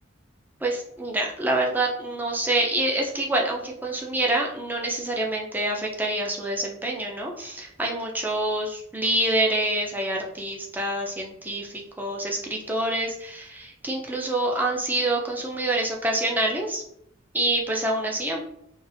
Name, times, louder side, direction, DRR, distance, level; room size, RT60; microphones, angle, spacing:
voice 1, 0.6-16.8 17.3-18.4, right 1 dB, 10° right, -1 dB, 0.5 m, -26 dB
3.9 x 2.5 x 2.5 m, 0.74 s
head